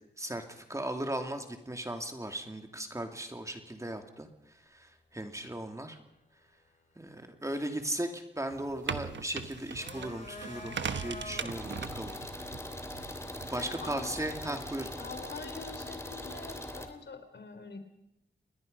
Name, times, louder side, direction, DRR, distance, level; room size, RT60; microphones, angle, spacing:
voice 1, 0.2-4.3 4.7-6.0 7.0-12.2 13.5-14.9, right 1 dB, 15° right, 5 dB, 2.5 m, -37 dB
sound 1, 8.5-14.7, right 6 dB, 80° right, 1.2 m, -41 dB
sound 2, 9.5-11.8, left 3 dB, 45° left, 3.4 m, -45 dB
sound 3, 11.5-16.9, left 1 dB, 15° left, 2.8 m, -41 dB
voice 2, 13.6-14.2 15.0-17.8, left 4 dB, 70° left, 8 dB, 3.5 m, -44 dB
29.5 x 21.0 x 5.4 m, 0.85 s
wide cardioid pair, 90°, 19 cm